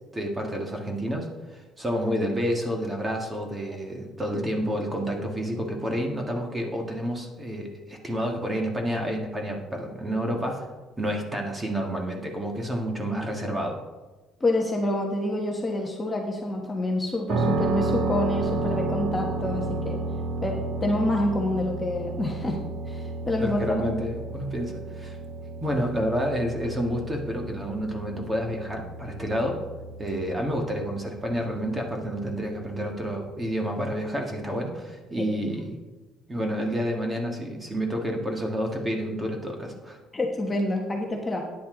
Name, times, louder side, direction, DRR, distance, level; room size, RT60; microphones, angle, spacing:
voice 1, 0.1-10.7 11.0-13.8 23.4-25.2 25.6-29.6 30.0-35.8 36.3-40.0, equal, 15° right, 2 dB, 1.8 m, -29 dB
voice 2, 14.4-20.0 20.4-23.6 40.1-41.4, left 1 dB, 15° left, 0 dB, 1.2 m, -27 dB
sound 1, 17.3-33.1, right 2 dB, 85° right, 1.9 m, -32 dB
13.0 x 9.8 x 3.9 m, 1.2 s
cardioid pair, 150°, 0 cm